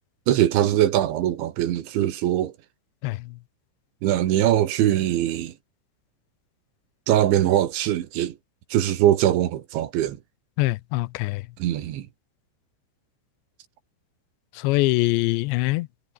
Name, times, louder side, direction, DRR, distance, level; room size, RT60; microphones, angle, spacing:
voice 1, 0.3-2.5 4.0-5.5 7.1-8.4 8.7-10.2 11.6-12.1, right 12 dB, 90° right, 4.2 m, -22 dB
voice 2, 10.6-11.4 14.6-15.9, left 21 dB, 90° left, 2.9 m, -23 dB
omnidirectional pair, 5.1 m